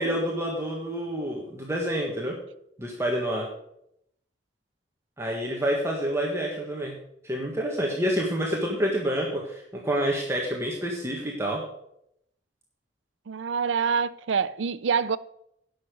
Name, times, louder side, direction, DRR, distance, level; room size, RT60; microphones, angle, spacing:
voice 1, 0.0-2.3 2.8-3.5 5.2-6.9 7.2-11.6, equal, 15° right, 1.6 m, -28 dB
voice 2, 13.3-15.2, right 6 dB, 90° right, 0.5 m, -26 dB
11.0 x 6.7 x 6.7 m
head